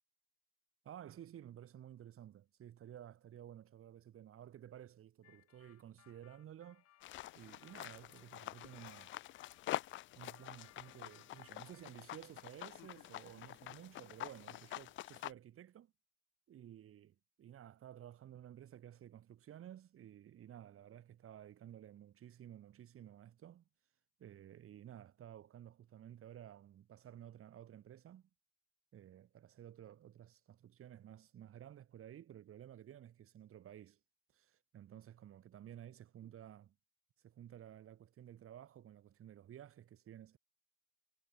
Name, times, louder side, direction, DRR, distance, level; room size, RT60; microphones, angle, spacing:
voice 1, 0.8-6.8 7.3-9.2 10.2-15.9 16.5-23.6 24.2-28.3 28.9-34.0 34.3-36.7 37.2-40.4, right 11 dB, 45° right, 2.1 m, -54 dB
sound 1, 5.2-9.7 10.2-12.3 12.6-13.6, left 13 dB, 55° left, 5.0 m, -68 dB
sound 2, 7.0-15.3, left 15 dB, 40° left, 0.4 m, -47 dB
hypercardioid pair, 75°, 30 cm